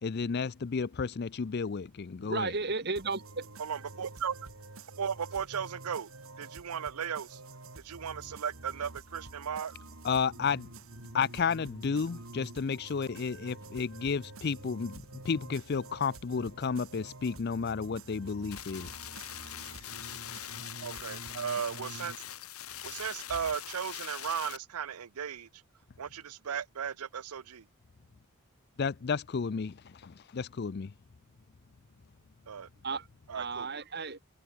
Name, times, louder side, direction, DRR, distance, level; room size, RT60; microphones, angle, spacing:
voice 1, 0.0-2.5 10.0-10.7 11.1-18.9 28.8-30.9, left 5 dB, 45° left, 0.4 m, -32 dB
voice 2, 2.2-3.5 32.8-33.1 33.3-34.2, right 4 dB, 45° right, 2.0 m, -34 dB
sound 1, 3.0-22.2, right 2 dB, 65° right, 2.8 m, -48 dB
voice 3, 3.6-4.3 5.0-6.1 6.4-7.4 7.8-9.7 20.8-22.1 22.8-25.5 26.0-27.6 32.5-32.7 33.3-33.8, right 7 dB, 85° right, 0.6 m, -36 dB
sound 2, 18.5-24.6, left 11 dB, 80° left, 6.7 m, -43 dB
head